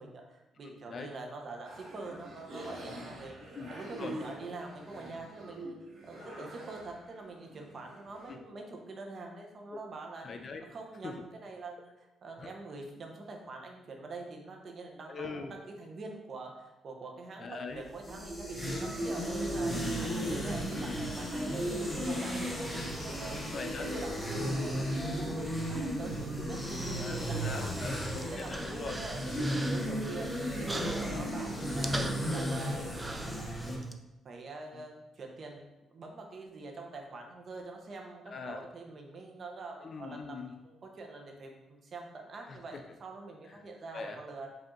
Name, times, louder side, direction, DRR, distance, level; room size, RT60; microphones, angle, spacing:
voice 1, 0.0-5.7 6.0-10.3 10.7-11.9 12.2-23.4 23.9-27.9 28.3-30.3 30.6-32.0 32.3-33.2 34.2-35.6 35.9-40.4 40.6-44.5, right 3 dB, 45° right, 2 dB, 0.9 m, -45 dB
voice 2, 0.6-1.1 3.5-3.7 4.0-4.2 6.2-6.5 8.3-8.4 9.7-9.8 10.2-10.6 11.0-11.2 12.4-12.5 15.1-15.5 17.4-17.8 20.0-20.9 23.5-23.9 24.3-24.7 27.0-29.0 31.0-31.4 34.7-34.9 38.3-38.6 39.8-40.6 42.5-42.8 43.4-43.7 43.9-44.2, left 4 dB, 50° left, 5 dB, 0.4 m, -41 dB
sound 1, 1.6-8.3, right 1 dB, 70° right, 1.3 m, -46 dB
sound 2, 17.8-33.8, equal, 5° left, 1.0 m, -34 dB
Human voice, 27.7-33.9, right 1 dB, 15° right, 0.4 m, -42 dB
5.0 x 2.7 x 3.8 m, 0.98 s
cardioid pair, 90°, 0 cm